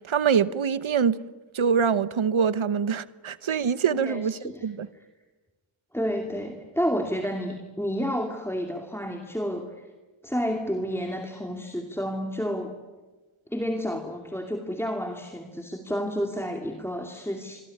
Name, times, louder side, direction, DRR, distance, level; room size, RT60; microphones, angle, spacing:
voice 1, 0.1-1.2 1.5-4.9, right 7 dB, 90° right, 1.0 m, -24 dB
voice 2, 3.9-4.7 4.9-5.0 5.9-9.8 10.2-12.7 13.5-17.6, equal, 5° left, 2.6 m, -30 dB
27.0 x 23.0 x 9.8 m
wide cardioid pair, 60°, 47 cm